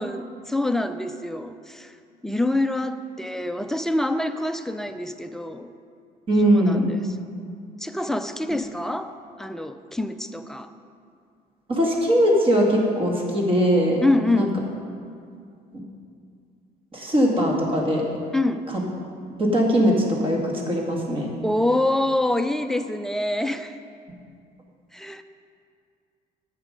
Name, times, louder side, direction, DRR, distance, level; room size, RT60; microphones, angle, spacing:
voice 1, 0.0-1.9 2.2-5.7 6.4-7.1 7.8-9.1 9.4-10.7 14.0-14.5 18.3-18.6 21.4-23.8 24.9-25.2, left 1 dB, 5° left, 8 dB, 0.5 m, -26 dB
voice 2, 6.3-6.9 11.7-14.0 14.3-14.5 15.7-15.8 16.9-18.0 19.3-21.3, equal, 30° right, -1 dB, 2.1 m, -20 dB
10.5 x 8.2 x 5.1 m, 2.3 s
cardioid pair, 110°, 17 cm